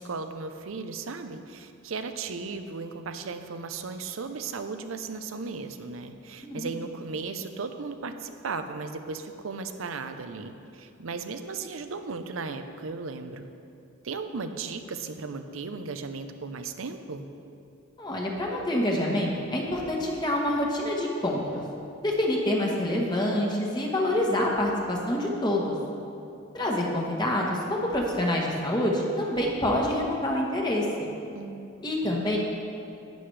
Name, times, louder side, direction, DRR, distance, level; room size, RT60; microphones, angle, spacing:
voice 1, 0.0-13.5 14.0-17.3 31.3-31.7 32.0-32.4, right 4 dB, 90° right, 8 dB, 0.6 m, -36 dB
voice 2, 18.0-21.6 22.0-25.7 26.5-30.8 31.8-32.4, left 1 dB, 20° left, -2 dB, 1.1 m, -26 dB
11.5 x 9.5 x 3.3 m, 2.6 s
head